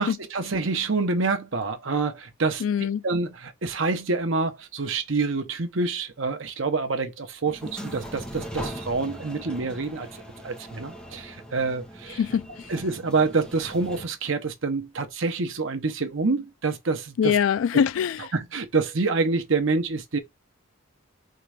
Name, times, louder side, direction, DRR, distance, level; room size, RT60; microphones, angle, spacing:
voice 1, 0.0-2.6 3.0-10.1 10.4-12.2 12.7-17.4 18.3-20.2, right 4 dB, 70° right, 0.9 m, -27 dB
voice 2, 2.6-3.0 12.2-12.7 17.2-18.3, left 7 dB, 75° left, 0.3 m, -23 dB
sound 1, 7.5-14.1, equal, 5° left, 1.3 m, -40 dB
3.8 x 3.6 x 3.4 m
head